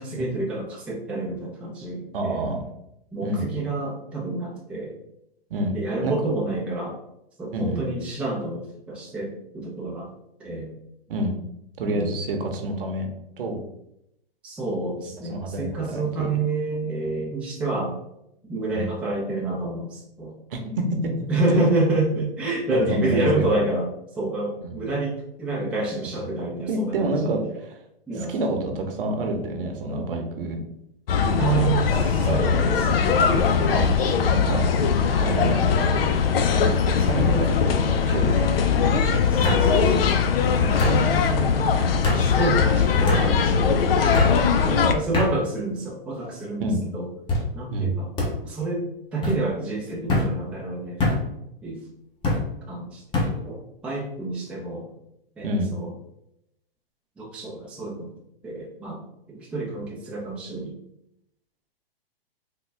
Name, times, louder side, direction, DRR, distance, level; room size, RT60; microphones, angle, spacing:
voice 1, 0.0-2.4 3.1-4.9 5.7-7.0 7.4-10.1 10.4-10.7 11.8-12.2 14.4-18.0 18.5-20.3 21.3-23.9 24.2-27.4 28.1-28.3 29.9-30.1 31.4-33.2 34.3-34.7 36.5-37.5 39.3-40.1 40.6-46.7 46.9-47.1 47.5-48.1 48.4-51.1 51.6-51.8 52.7-53.0 53.3-54.9 55.4-55.9 57.2-58.2 58.4-59.0 59.3-60.8, right 2 dB, 5° right, -4 dB, 0.4 m, -28 dB
voice 2, 2.1-2.7 3.2-3.4 5.5-5.7 6.0-6.1 7.5-7.8 11.1-11.3 11.8-13.1 13.4-13.6 15.2-16.3 18.7-18.9 20.5-21.6 22.7-23.4 24.6-24.8 26.4-27.4 28.3-30.6 31.2-33.9 34.3-34.6 35.1-35.9 37.1-37.5 38.0-40.0 40.7-41.0 46.6-46.8 47.7-47.9 55.4-55.7, right 1 dB, 65° right, 3 dB, 0.8 m, -28 dB
sound 1, 31.1-44.9, left 6 dB, 70° left, 0.5 m, -21 dB
sound 2, 36.0-36.4 36.7-37.3 38.4-38.5 39.4-39.6 40.8-41.0 42.0-42.2 43.1-43.3 44.1-44.4 45.1-45.3 46.1-46.5 47.3-47.5 48.2-48.3 49.2-49.4 50.1-50.3 51.0-51.2 52.2-52.4 53.1-53.3, left 2 dB, 15° left, 0.9 m, -24 dB
3.6 x 2.2 x 3.3 m, 0.80 s
hypercardioid pair, 120°, 30 cm